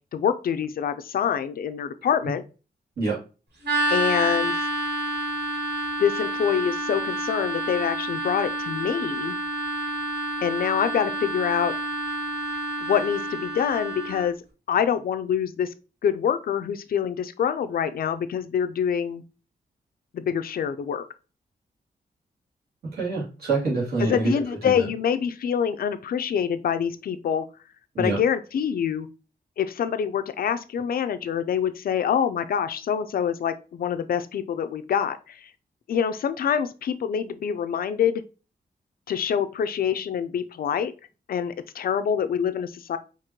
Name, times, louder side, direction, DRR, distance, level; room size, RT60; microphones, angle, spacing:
voice 1, 0.1-2.4 3.9-4.5 6.0-9.3 10.4-11.7 12.8-14.4 14.7-15.7 16.0-19.2 20.1-21.0 24.0-27.5 28.0-29.1 29.6-35.5 35.9-38.2 39.1-40.9 41.3-43.0, left 8 dB, 60° left, 10 dB, 0.4 m, -25 dB
sound 1, 3.6-14.3, right 1 dB, 85° right, 2.2 m, -29 dB
voice 2, 22.9-24.3 24.6-24.9 27.9-28.2, right 3 dB, 65° right, -5 dB, 2.3 m, -26 dB
5.1 x 3.0 x 2.8 m, 0.33 s
wide cardioid pair, 175°, 17 cm